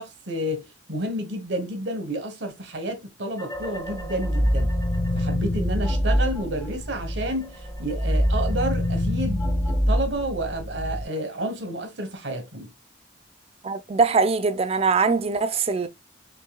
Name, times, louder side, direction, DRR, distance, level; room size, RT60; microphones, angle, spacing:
voice 1, 0.0-4.7 5.1-12.7, right 1 dB, 85° right, 1.2 m, -30 dB
sound 1, 3.4-7.3 7.6-11.0, equal, 15° left, 0.6 m, -25 dB
voice 2, 13.6-15.9, right 4 dB, 35° right, 0.5 m, -22 dB
6.5 x 2.6 x 2.3 m
head